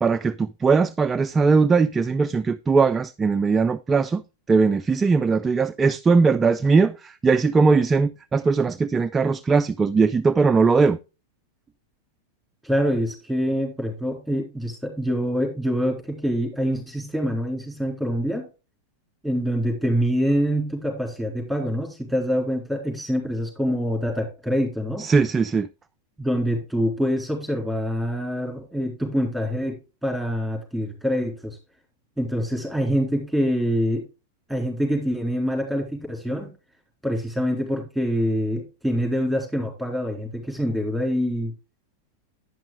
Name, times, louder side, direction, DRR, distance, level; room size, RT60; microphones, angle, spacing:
voice 1, 0.0-4.2 4.5-11.0 25.0-25.7, right 4 dB, 15° right, 0.4 m, -20 dB
voice 2, 12.6-18.4 19.2-25.0 26.2-31.6 32.2-34.0 34.5-36.5 37.0-41.5, equal, ahead, 3.8 m, -25 dB
9.8 x 6.0 x 3.8 m
hypercardioid pair, 105°, 0 cm